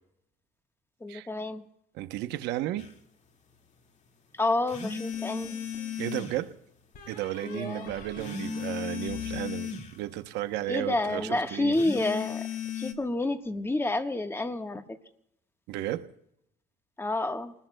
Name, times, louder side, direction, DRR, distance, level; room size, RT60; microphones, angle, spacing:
voice 1, 1.0-1.6 4.4-5.6 7.4-7.9 10.7-12.5 12.8-15.0 17.0-17.5, left 2 dB, 15° left, 7 dB, 1.3 m, -29 dB
voice 2, 1.9-2.9 5.9-6.5 7.1-11.8 15.7-16.1, right 14 dB, 90° right, 10 dB, 0.8 m, -33 dB
sound 1, 2.8-2.9 4.7-6.4 8.2-10.0 11.7-12.9, left 7 dB, 45° left, 2.0 m, -35 dB
sound 2, 5.1-6.0 6.9-10.3, left 3 dB, 60° left, 4.3 m, -47 dB
28.5 x 20.0 x 2.2 m, 0.76 s
cardioid pair, 110°, 17 cm